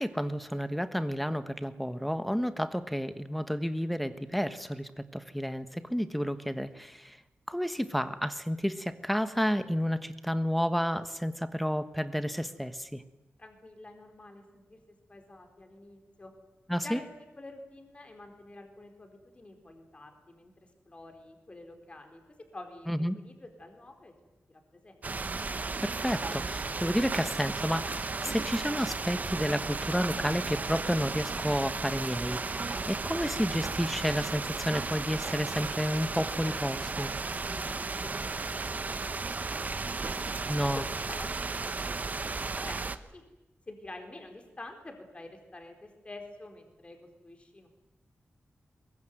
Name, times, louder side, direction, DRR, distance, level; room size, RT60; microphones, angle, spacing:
voice 1, 0.0-7.2 7.5-13.0 16.7-17.0 22.9-23.2 25.8-37.1 40.5-40.8, equal, ahead, 11 dB, 1.3 m, -31 dB
voice 2, 13.4-16.3 16.8-17.0 17.4-20.5 20.9-22.2 22.5-24.1 24.5-25.2 37.3-38.6 39.0-39.7 40.0-41.3 41.7-42.8 43.1-43.2 43.7-47.0 47.2-47.7, left 2 dB, 25° left, 4 dB, 4.3 m, -48 dB
sound 1, 25.0-43.0, right 3 dB, 40° right, 1.1 m, -34 dB
22.0 x 22.0 x 9.3 m, 1.0 s
wide cardioid pair, 125°, 4 cm